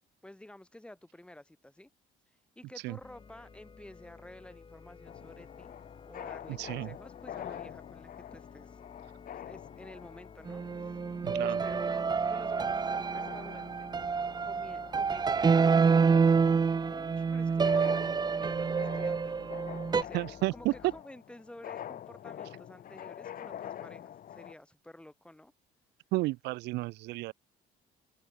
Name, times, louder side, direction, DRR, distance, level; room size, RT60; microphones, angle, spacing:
voice 1, 0.2-1.9 2.6-5.8 6.1-8.8 9.5-13.9 14.4-19.4 19.9-20.2 20.5-25.5, left 1 dB, 5° left, 7.1 m, -51 dB
sound 1, 3.0-21.0, left 5 dB, 30° left, 3.9 m, -53 dB
sound 2, 5.1-24.5, left 10 dB, 55° left, 3.9 m, -47 dB
voice 2, 6.5-7.0 11.2-11.6 20.1-20.7 26.1-27.3, right 20 dB, 85° right, 1.2 m, -32 dB
sound 3, 10.5-20.0, right 5 dB, 25° right, 0.9 m, -28 dB
open air
cardioid pair, 110°, 17 cm